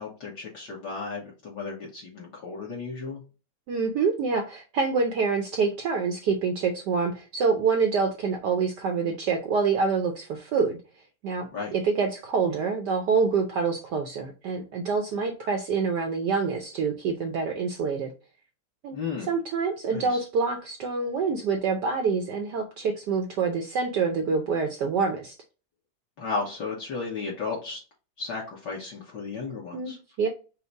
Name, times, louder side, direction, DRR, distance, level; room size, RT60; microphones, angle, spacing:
voice 1, 0.0-3.2 11.5-11.7 18.9-19.3 19.9-20.2 26.2-27.8 28.2-30.0, left 4 dB, 55° left, -3 dB, 1.5 m, -34 dB
voice 2, 3.7-10.7 11.2-18.1 18.8-19.0 19.3-25.4 29.7-30.3, right 5 dB, 70° right, 3 dB, 1.0 m, -26 dB
5.3 x 2.0 x 4.5 m, 0.34 s
omnidirectional pair, 2.4 m